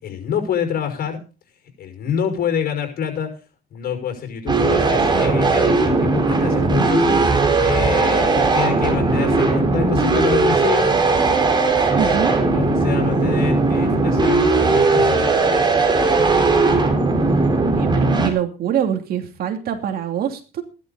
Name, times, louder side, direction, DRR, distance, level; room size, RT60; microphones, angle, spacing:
voice 1, 0.0-1.2 1.8-3.4 3.7-10.9 12.5-15.3, left 8 dB, 60° left, 6 dB, 5.5 m, -27 dB
sound 1, 4.5-18.3, right 3 dB, 25° right, 4.6 m, -18 dB
voice 2, 11.9-12.3 17.7-20.6, right 9 dB, 65° right, 5 dB, 2.9 m, -24 dB
16.0 x 12.0 x 4.1 m, 0.33 s
cardioid pair, 110°, 17 cm